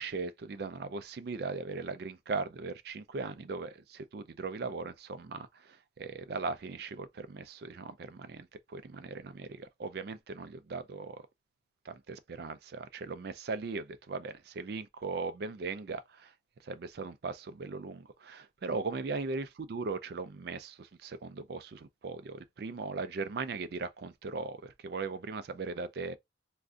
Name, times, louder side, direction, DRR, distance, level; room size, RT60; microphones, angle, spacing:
voice 1, 0.0-11.2 11.9-16.3 16.6-26.2, right 4 dB, 55° right, 0.4 m, -39 dB
2.4 x 2.2 x 3.6 m
head